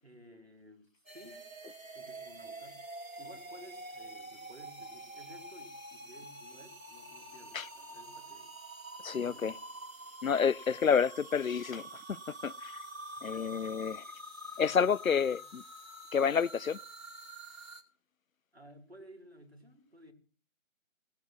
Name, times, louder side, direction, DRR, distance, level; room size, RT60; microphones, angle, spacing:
voice 1, 0.0-1.4 1.9-2.8 3.2-8.5 9.1-9.6 13.1-13.6 15.1-15.5 18.5-20.1, equal, 50° right, 2.4 m, -56 dB
sound 1, 1.1-17.8, right 1 dB, 80° right, 2.5 m, -47 dB
voice 2, 9.0-9.5 10.2-12.8 13.2-14.0 14.6-15.6 16.1-16.8, left 6 dB, 75° left, 0.5 m, -29 dB
18.5 x 7.4 x 6.1 m
figure-of-eight pair, 175°, 41 cm